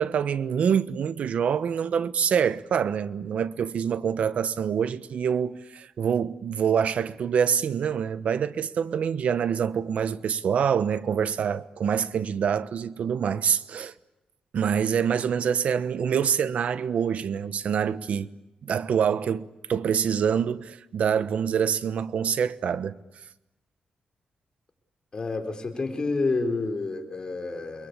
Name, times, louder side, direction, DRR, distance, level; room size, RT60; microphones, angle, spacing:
voice 1, 0.0-13.9 14.5-18.3 18.6-23.0, right 7 dB, 70° right, 1.1 m, -26 dB
voice 2, 25.1-27.9, left 3 dB, 35° left, 4.8 m, -29 dB
29.0 x 22.5 x 8.5 m
cardioid pair, 105°, 2 cm